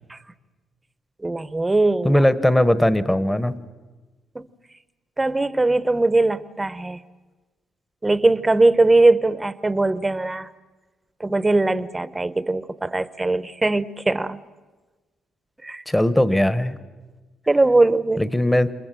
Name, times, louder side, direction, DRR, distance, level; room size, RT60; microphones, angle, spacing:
voice 1, 1.2-2.2 4.3-4.5 5.2-7.0 8.0-10.5 11.2-14.4 15.6-15.8 17.5-18.3, right 2 dB, 15° right, 0.9 m, -20 dB
voice 2, 2.0-3.6 15.9-16.8 18.2-18.7, left 1 dB, 10° left, 1.2 m, -19 dB
28.0 x 22.5 x 7.7 m
cardioid pair, 90°, 0 cm